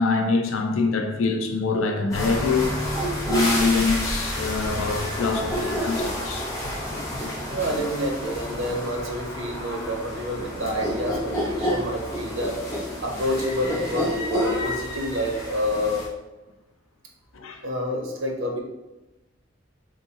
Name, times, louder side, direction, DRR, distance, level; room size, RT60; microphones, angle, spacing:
voice 1, 0.0-2.8 3.2-6.5 17.3-17.6, left 4 dB, 90° left, 0.5 m, -24 dB
sound 1, 2.1-16.1, equal, 15° left, 0.9 m, -29 dB
voice 2, 7.5-12.6 13.0-16.1 17.6-18.6, equal, 85° right, 0.8 m, -28 dB
3.7 x 3.6 x 2.8 m
head